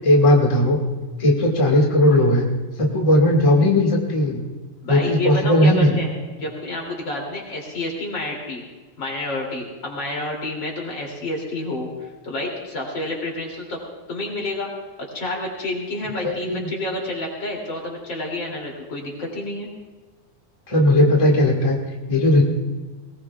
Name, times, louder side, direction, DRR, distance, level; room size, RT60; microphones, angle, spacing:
voice 1, 0.0-0.8 1.2-2.4 2.8-4.4 4.9-5.9 16.2-16.7 20.7-21.8 22.1-22.4, left 1 dB, 55° left, -2 dB, 0.3 m, -17 dB
voice 2, 4.8-8.6 9.0-13.8 14.1-14.7 15.0-19.7, left 2 dB, 35° left, -1 dB, 3.2 m, -29 dB
21.5 x 18.5 x 2.4 m, 1.3 s
omnidirectional pair, 4.2 m